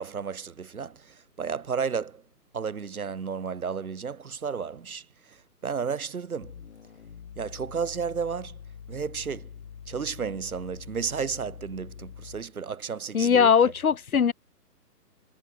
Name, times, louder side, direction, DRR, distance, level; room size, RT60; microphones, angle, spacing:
voice 1, 0.0-2.2 2.5-6.6 7.4-8.6 8.9-9.5 9.9-13.5, right 6 dB, 60° right, 3.8 m, -33 dB
sound 1, 6.4-12.6, left 7 dB, 45° left, 4.9 m, -45 dB
voice 2, 13.1-14.3, left 7 dB, 60° left, 1.5 m, -20 dB
hypercardioid pair, 175°, 48 cm